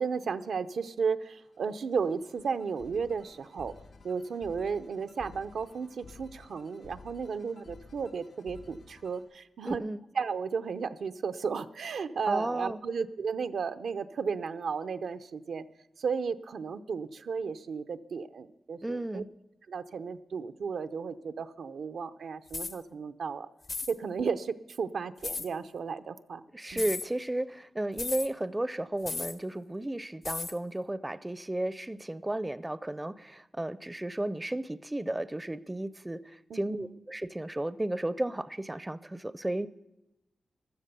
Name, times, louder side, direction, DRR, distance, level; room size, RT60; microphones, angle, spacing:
voice 1, 0.0-3.8 4.0-9.8 10.1-15.7 16.0-19.2 19.7-23.5 23.9-26.4 26.7-26.8 36.5-36.9, right 5 dB, 85° right, 9 dB, 0.6 m, -34 dB
sound 1, 1.3-9.2, left 4 dB, 80° left, 4.0 m, -53 dB
voice 2, 9.6-10.0 12.3-12.8 18.8-19.3 26.5-39.7, right 1 dB, 15° right, 15 dB, 0.4 m, -34 dB
sound 2, 22.5-22.8 23.6-23.9 25.2-25.5 26.7-27.1 28.0-28.3 29.0-29.4 30.2-30.6, left 3 dB, 45° left, 0.6 m, -35 dB
14.5 x 13.0 x 6.8 m, 0.91 s
wide cardioid pair, 110°, 0 cm